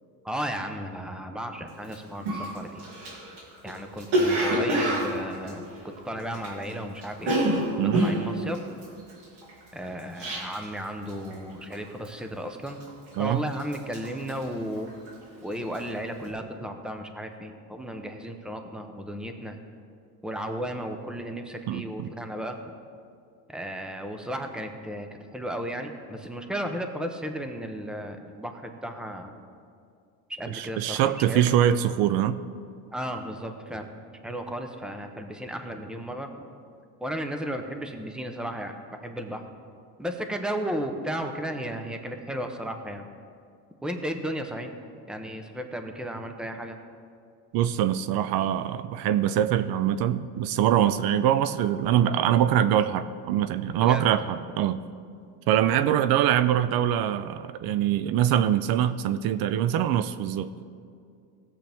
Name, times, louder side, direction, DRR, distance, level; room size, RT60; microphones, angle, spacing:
voice 1, 0.2-2.8 3.6-7.4 7.8-8.6 9.7-12.8 13.2-14.9 15.4-19.6 20.2-22.6 23.5-29.3 30.3-31.5 32.9-33.9 34.2-36.5 37.0-39.4 40.0-43.1 43.8-44.7 45.1-46.8 53.8-54.0, equal, ahead, 5 dB, 0.8 m, -34 dB
Cough, 1.8-1.9 2.3-6.7 7.0-10.8 11.1-11.4 11.7-12.2 12.7-13.3 13.6-15.2 15.5-15.9, right 1 dB, 85° right, 2.9 m, -27 dB
voice 2, 21.7-22.1 30.5-32.4 47.5-54.8 55.5-60.7, right 10 dB, 70° right, 13 dB, 0.5 m, -24 dB
17.5 x 7.5 x 3.5 m, 2.3 s
cardioid pair, 120°, 38 cm